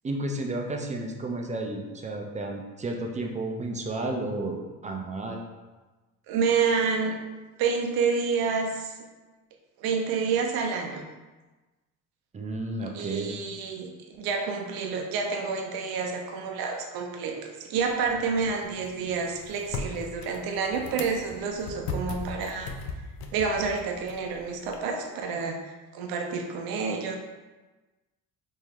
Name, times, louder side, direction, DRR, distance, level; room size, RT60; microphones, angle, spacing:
voice 1, 0.0-5.4 12.3-13.3, right 2 dB, 20° right, 2 dB, 0.4 m, -32 dB
voice 2, 6.3-7.2 7.6-8.9 9.8-11.0 12.9-22.7 23.3-27.1, right 5 dB, 75° right, 2 dB, 0.7 m, -29 dB
sound 1, 17.8-24.8, left 3 dB, 75° left, 0.5 m, -39 dB
3.0 x 2.6 x 3.5 m, 1.2 s
cardioid pair, 100°, 37 cm